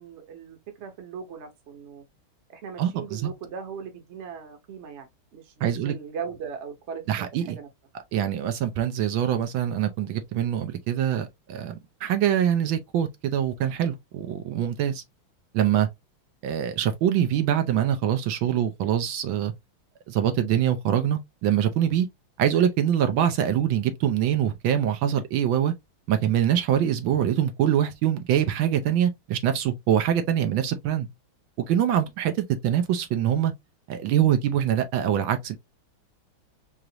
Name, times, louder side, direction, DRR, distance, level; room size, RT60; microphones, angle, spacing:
voice 1, 0.0-2.0 2.5-7.7, right 6 dB, 45° right, 1.1 m, -39 dB
voice 2, 2.8-3.2 5.6-5.9 7.1-7.6 8.1-15.0 15.5-15.9 16.4-19.5 20.1-22.1 22.4-25.7 26.1-31.1 31.7-32.3 32.6-33.5 33.9-35.6, right 10 dB, 75° right, 1.4 m, -24 dB
4.9 x 2.5 x 2.8 m
omnidirectional pair, 2.2 m